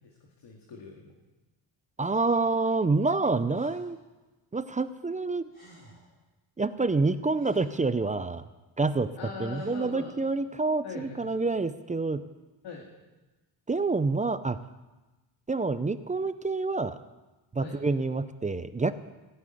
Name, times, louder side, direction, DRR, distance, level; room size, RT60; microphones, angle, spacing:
voice 1, 0.0-1.1 9.2-10.2 10.8-11.3 12.6-12.9 17.6-17.8, left 4 dB, 55° left, -1 dB, 2.1 m, -41 dB
voice 2, 2.0-4.0 4.5-5.5 6.6-8.4 8.8-9.1 9.4-12.3 13.7-14.6 15.5-17.0 17.5-18.9, right 3 dB, 15° right, 12 dB, 0.4 m, -27 dB
Breathing, 3.5-4.0 5.2-5.3 5.5-6.2 6.9-7.9 9.5-10.0, right 1 dB, 20° left, 3.8 m, -57 dB
16.0 x 7.5 x 9.4 m, 1.1 s
cardioid pair, 135°, 48 cm